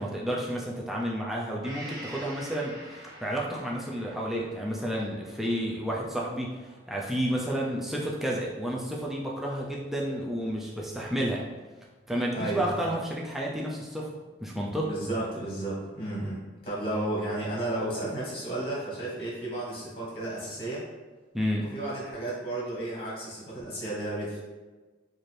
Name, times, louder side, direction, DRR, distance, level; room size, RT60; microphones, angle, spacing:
voice 1, 0.0-11.4 12.1-14.1 14.4-14.9 21.3-21.7, equal, ahead, -4 dB, 0.4 m, -31 dB
Gong, 1.6-9.3 9.7-9.8, equal, 20° right, 0.7 m, -48 dB
voice 2, 12.3-12.8 14.8-20.8 21.7-24.4, right 1 dB, 30° left, -6 dB, 1.5 m, -33 dB
4.2 x 2.6 x 3.2 m, 1.3 s
head